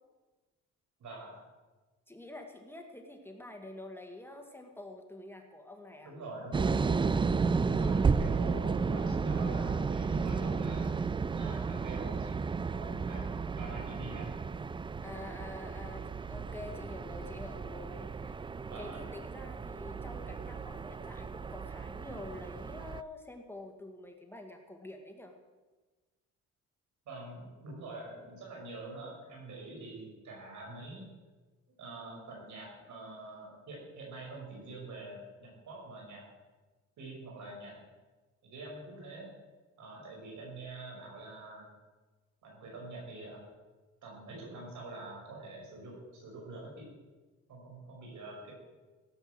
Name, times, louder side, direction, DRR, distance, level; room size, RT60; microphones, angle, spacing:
voice 1, 1.0-1.4 6.0-6.9 7.6-10.9 11.3-12.4 12.7-14.3 18.7-19.0 27.1-31.0 31.8-36.2 37.0-37.8 38.4-39.3 39.8-41.7 42.4-43.4 44.0-46.9 47.5-48.5, right 2 dB, 70° right, -1 dB, 5.9 m, -45 dB
voice 2, 2.1-6.1 15.0-18.4 18.8-25.4, left 2 dB, 5° left, 3 dB, 1.9 m, -47 dB
sound 1, 6.5-23.0, right 5 dB, 15° right, 0.3 m, -33 dB
16.5 x 8.0 x 7.9 m, 1.3 s
cardioid pair, 90°, 30 cm